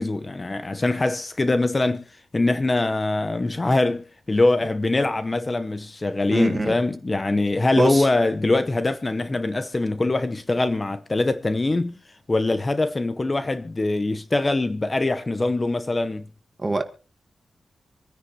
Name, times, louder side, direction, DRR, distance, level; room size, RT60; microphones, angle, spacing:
voice 1, 0.0-12.0 12.3-16.3, left 2 dB, 25° left, 0.7 m, -23 dB
voice 2, 6.3-6.8 7.8-8.1 16.6-16.8, right 2 dB, 25° right, 1.8 m, -23 dB
26.5 x 9.9 x 3.2 m
wide cardioid pair, 115°, 0 cm